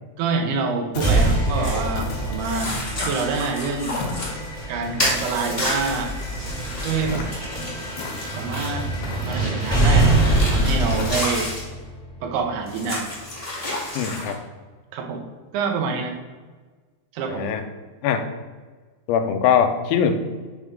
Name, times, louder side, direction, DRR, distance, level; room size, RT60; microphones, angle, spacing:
voice 1, 0.2-2.7 3.0-4.1 4.7-6.1 6.9-7.3 8.3-8.9 9.2-11.5 12.2-13.1 14.9-15.2 15.5-16.2 17.1-17.5, right 4 dB, 80° right, 3 dB, 3.4 m, -26 dB
sound 1, 0.9-1.4 1.9-2.4 3.0-3.4 4.0-4.4 5.0-5.5 7.1-7.4 7.9-8.5 9.0-9.4 10.0-10.4 11.0-11.3, left 4 dB, 70° left, 3.4 m, -35 dB
sound 2, 1.0-13.0, right 2 dB, 20° left, 1.2 m, -25 dB
sound 3, 1.6-1.9 2.4-4.3 5.0-8.9 9.6-11.6 12.7-14.3, left 1 dB, 40° left, 0.8 m, -31 dB
voice 2, 14.0-14.4 17.3-17.6 18.0-18.3 19.1-20.1, left 8 dB, 90° left, 7 dB, 3.1 m, -21 dB
9.4 x 3.7 x 6.1 m, 1.4 s
omnidirectional pair, 5.2 m